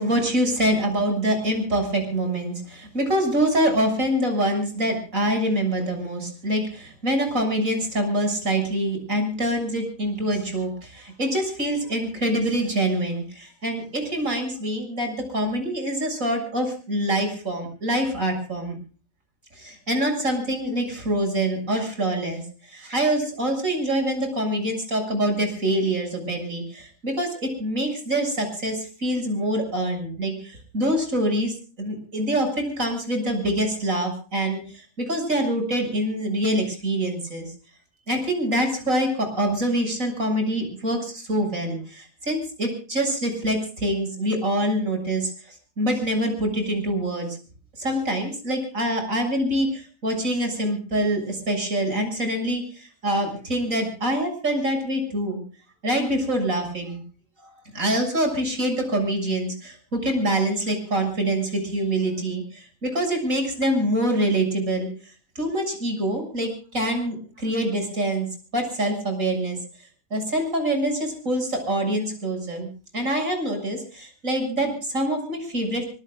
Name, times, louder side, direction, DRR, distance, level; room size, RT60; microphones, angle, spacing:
voice 1, 0.0-18.8 19.5-37.5 38.1-47.4 47.8-55.4 55.8-57.0 57.4-64.9 65.4-68.3 68.5-69.6 70.1-72.7 72.9-75.8, right 1 dB, 80° right, 4 dB, 7.4 m, -25 dB
24.5 x 22.5 x 2.5 m, 0.38 s
omnidirectional pair, 1.4 m